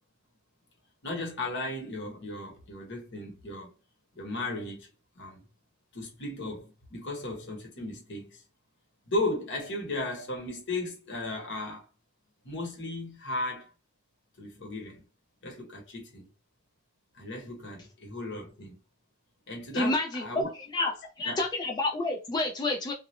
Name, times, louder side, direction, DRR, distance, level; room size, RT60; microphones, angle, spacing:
voice 1, 1.0-3.7 4.2-4.9 5.2-5.4 5.9-8.4 9.0-11.9 12.4-13.7 14.4-15.0 15.4-16.3 17.2-18.8 19.5-20.5 20.8-20.9 21.2-21.4, left 2 dB, 60° left, 1.0 m, -35 dB
voice 2, 19.7-20.9 21.2-22.9, left 2 dB, 20° left, 0.4 m, -29 dB
2.4 x 2.0 x 3.0 m
head